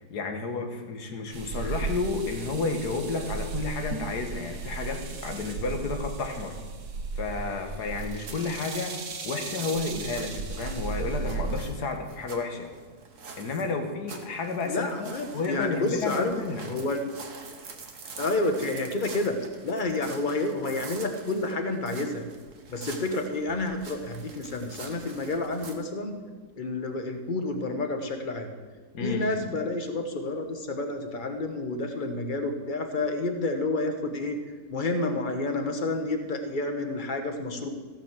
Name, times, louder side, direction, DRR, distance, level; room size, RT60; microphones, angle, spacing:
voice 1, 0.1-6.5 7.2-8.9 9.3-12.7 13.4-16.7 28.9-29.3, left 3 dB, 70° left, 5 dB, 2.0 m, -31 dB
sound 1, 1.3-11.6, right 5 dB, 65° right, 1.7 m, -35 dB
sound 2, 7.9-25.7, right 4 dB, 50° right, 1.5 m, -46 dB
voice 2, 14.6-16.3 16.7-17.0 18.2-19.3 19.6-22.3 22.7-26.2 26.6-28.5 29.0-34.4 34.7-37.7, left 2 dB, 35° left, 6 dB, 1.2 m, -29 dB
15.0 x 5.8 x 7.4 m, 1.5 s
omnidirectional pair, 1.8 m